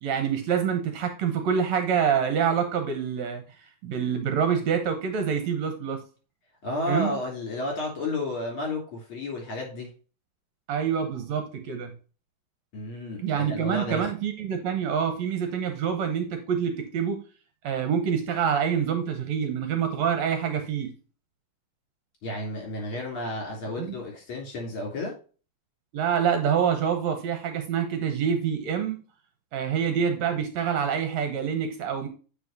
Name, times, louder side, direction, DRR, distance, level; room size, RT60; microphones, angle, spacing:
voice 1, 0.0-3.4 3.8-6.0 6.9-7.1 10.7-11.9 13.2-17.2 17.6-20.9 23.8-23.9 25.9-29.0 29.5-32.1, right 7 dB, 70° right, 6 dB, 2.1 m, -26 dB
voice 2, 6.6-9.9 12.7-14.1 22.2-25.1, left 2 dB, 45° left, -1 dB, 3.8 m, -32 dB
8.9 x 5.1 x 2.7 m, 0.36 s
omnidirectional pair, 3.5 m